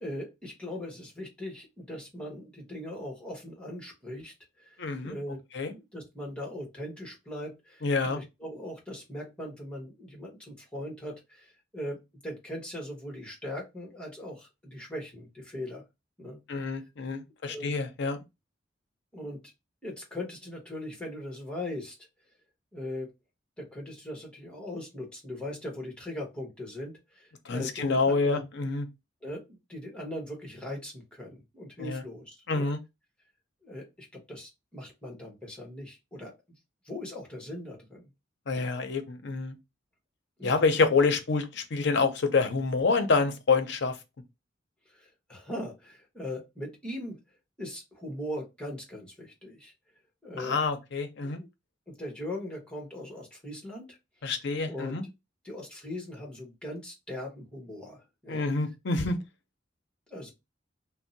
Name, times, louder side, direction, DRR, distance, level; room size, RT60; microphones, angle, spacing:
voice 1, 0.0-5.4 5.7-15.8 16.2-16.4 17.5-17.7 19.1-19.4 19.8-22.0 22.7-23.1 23.6-28.4 29.2-32.7 33.6-36.3 36.8-38.1 38.5-38.7 40.4-40.6 44.9-47.2 47.6-49.7 50.2-50.6 51.2-51.5 51.9-54.0 54.6-55.0 55.4-58.5 60.1-60.3, left 1 dB, 5° left, 1.0 m, -40 dB
voice 2, 4.8-5.1 5.5-5.7 7.8-8.2 16.5-18.2 27.5-28.9 31.8-32.0 32.5-32.8 38.5-39.6 40.4-44.0 50.4-51.4 54.2-55.0 58.3-59.2, left 4 dB, 65° left, 0.6 m, -27 dB
2.6 x 2.0 x 3.8 m
head